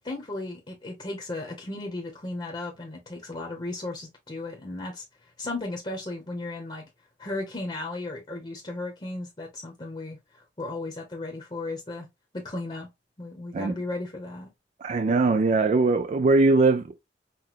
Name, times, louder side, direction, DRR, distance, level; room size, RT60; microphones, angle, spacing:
voice 1, 0.0-6.9 7.2-12.1 12.3-12.9 13.2-14.5, left 2 dB, 30° left, 0.9 m, -35 dB
voice 2, 14.8-17.0, right 3 dB, 40° right, 0.3 m, -21 dB
6.0 x 2.2 x 3.0 m
head